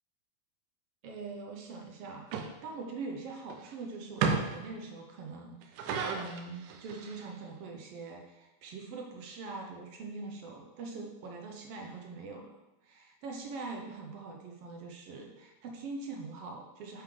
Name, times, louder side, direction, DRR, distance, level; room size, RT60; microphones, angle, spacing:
voice 1, 1.0-12.5 12.8-17.0, right 3 dB, 70° right, 1 dB, 1.5 m, -43 dB
sound 1, 2.3-2.4 3.5-3.7 4.2-4.7 5.6-7.3, right 5 dB, 85° right, 2.3 m, -32 dB
9.1 x 5.1 x 3.7 m, 1.1 s
omnidirectional pair, 3.5 m